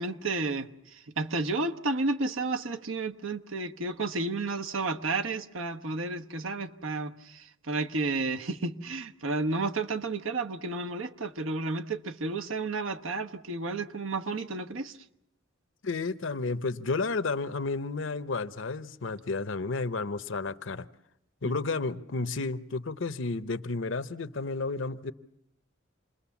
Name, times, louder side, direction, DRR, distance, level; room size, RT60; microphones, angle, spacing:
voice 1, 0.0-14.9 21.4-21.5, right 3 dB, 85° right, 1.1 m, -32 dB
voice 2, 15.8-20.9 21.4-25.1, left 3 dB, 70° left, 0.9 m, -32 dB
27.5 x 21.0 x 7.2 m
head